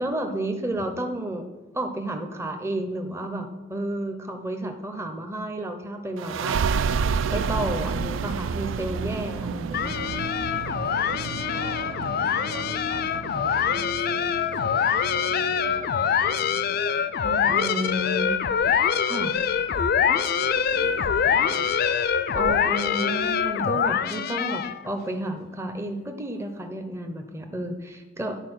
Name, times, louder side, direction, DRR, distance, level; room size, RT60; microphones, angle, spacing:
voice 1, 0.0-1.5 1.7-6.9 7.3-10.1 17.2-18.4 19.0-19.3 22.3-28.4, right 1 dB, 15° right, 5 dB, 0.6 m, -31 dB
sound 1, 6.2-17.4, right 6 dB, 85° right, 0.4 m, -31 dB
sound 2, 9.7-24.9, left 7 dB, 55° left, 0.4 m, -24 dB
voice 2, 10.7-16.6 17.5-18.1 19.1-19.9 20.3-22.0 22.5-22.7, right 2 dB, 65° right, 5 dB, 0.9 m, -43 dB
10.5 x 4.2 x 6.2 m, 1.2 s
head